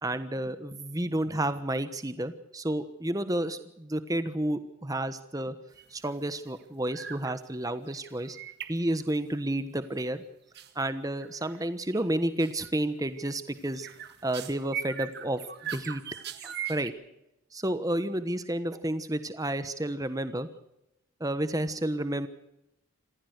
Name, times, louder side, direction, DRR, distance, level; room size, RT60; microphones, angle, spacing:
voice 1, 0.0-5.5 5.9-8.4 8.7-10.2 10.8-13.9 14.2-15.4 15.7-16.0 16.4-16.9 17.5-20.5 21.2-22.3, right 1 dB, 15° right, 11 dB, 1.2 m, -31 dB
sound 1, 5.7-6.1 6.4-6.6 6.9-7.4 7.7-9.4 10.5-10.7 11.2-11.6 11.9-12.1 12.4-12.7 13.1-16.9, right 8 dB, 50° right, 1.8 m, -40 dB
27.0 x 15.5 x 6.6 m, 0.87 s
head